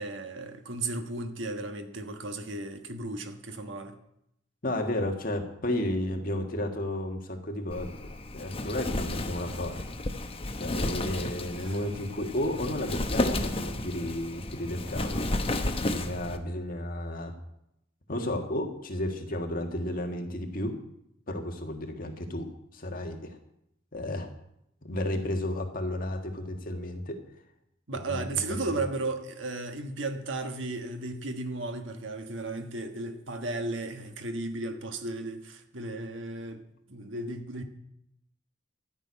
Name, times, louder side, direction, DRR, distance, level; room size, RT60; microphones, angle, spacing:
voice 1, 0.0-4.0 11.6-11.7 27.9-36.6 36.9-37.6, right 2 dB, 75° right, 1.4 m, -35 dB
voice 2, 4.6-9.8 10.6-15.3 15.8-17.3 18.1-20.7 21.3-22.5 22.7-23.4 23.9-24.3 24.9-27.2 28.1-28.8, left 1 dB, 45° left, 1.8 m, -33 dB
Wind, 7.7-16.4, left 2 dB, 30° left, 1.0 m, -32 dB
13.0 x 6.3 x 9.7 m
head